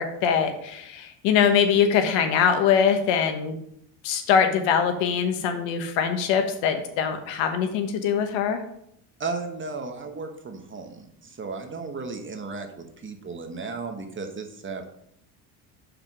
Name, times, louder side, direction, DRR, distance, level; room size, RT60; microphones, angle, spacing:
voice 1, 0.0-3.6 4.0-8.6, left 7 dB, 80° left, 7 dB, 1.3 m, -23 dB
voice 2, 9.2-14.9, right 4 dB, 25° right, 5 dB, 1.2 m, -35 dB
5.8 x 5.0 x 6.1 m, 0.73 s
cardioid pair, 110°, 44 cm